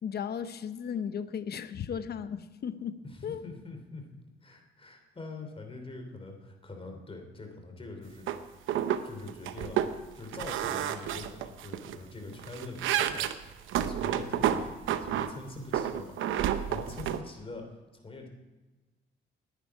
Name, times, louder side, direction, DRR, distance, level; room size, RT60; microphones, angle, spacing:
voice 1, 0.0-3.4, left 7 dB, 55° left, 12 dB, 0.9 m, -36 dB
voice 2, 3.0-4.0 4.4-8.3 9.0-9.8 10.1-16.2 16.7-18.3, left 3 dB, 30° left, 3 dB, 3.0 m, -44 dB
sound 1, 8.3-8.4 8.7-9.0 9.3-9.9 10.3-12.0 12.3-15.3 15.7-17.2, right 10 dB, 80° right, 0.8 m, -30 dB
19.0 x 10.0 x 4.8 m, 1.2 s
cardioid pair, 90°, 20 cm